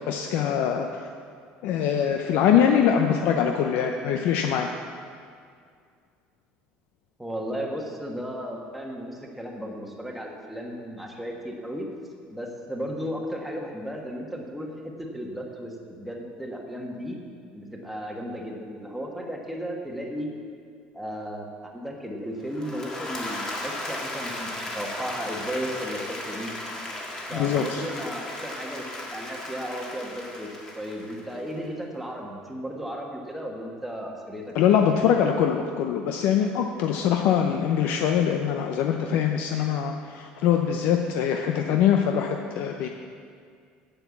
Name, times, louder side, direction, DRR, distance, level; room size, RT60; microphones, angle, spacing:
voice 1, 0.1-1.1 1.6-4.7 27.3-27.8 34.5-42.9, left 8 dB, 60° left, 4 dB, 0.6 m, -23 dB
voice 2, 7.2-11.9 12.3-17.2 17.5-20.3 20.9-26.5 27.3-34.9, equal, ahead, -1 dB, 1.3 m, -35 dB
Applause / Crowd, 22.4-31.6, left 1 dB, 20° left, 1.6 m, -36 dB
8.8 x 8.1 x 7.2 m, 2.2 s
cardioid pair, 160°, 4 cm